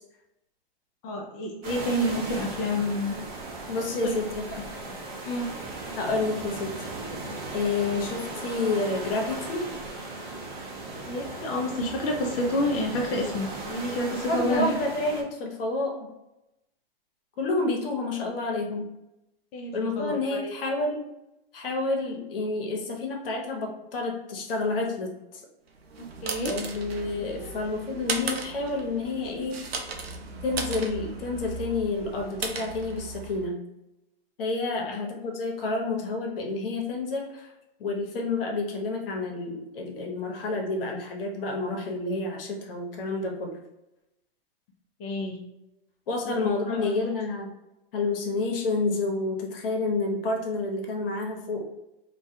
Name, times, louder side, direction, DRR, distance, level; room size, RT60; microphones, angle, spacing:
voice 1, 1.0-3.2 4.0-4.2 4.8-4.9 5.2-5.5 11.0-14.7 19.5-20.5 26.2-26.5 34.8-35.0 45.0-45.4 46.2-46.4 46.7-46.9, left 1 dB, 35° left, 0 dB, 0.5 m, -29 dB
sound 1, 1.6-15.2, right 2 dB, 30° right, 0.6 m, -37 dB
voice 2, 3.7-4.6 5.9-6.7 7.5-9.7 14.3-16.1 17.4-18.9 19.7-21.1 21.5-25.4 26.5-29.6 30.4-33.6 34.4-37.5 37.8-43.5 46.1-47.5 47.9-51.6, left 3 dB, 65° left, 2 dB, 0.8 m, -29 dB
sound 2, 25.8-33.5, right 3 dB, 90° right, 0.5 m, -36 dB
2.3 x 2.2 x 2.6 m, 0.90 s
hypercardioid pair, 110°, 30 cm